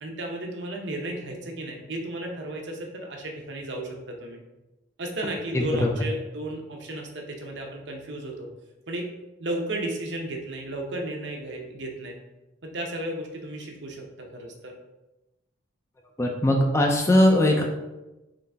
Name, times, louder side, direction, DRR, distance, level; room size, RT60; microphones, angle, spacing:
voice 1, 0.0-4.4 5.0-8.5 8.9-9.1 9.4-12.2 12.6-14.0 14.3-14.8, right 1 dB, 65° right, 1 dB, 0.7 m, -34 dB
voice 2, 5.5-5.9 16.2-17.6, left 1 dB, 15° left, 1 dB, 0.4 m, -20 dB
3.9 x 3.1 x 3.4 m, 1.0 s
head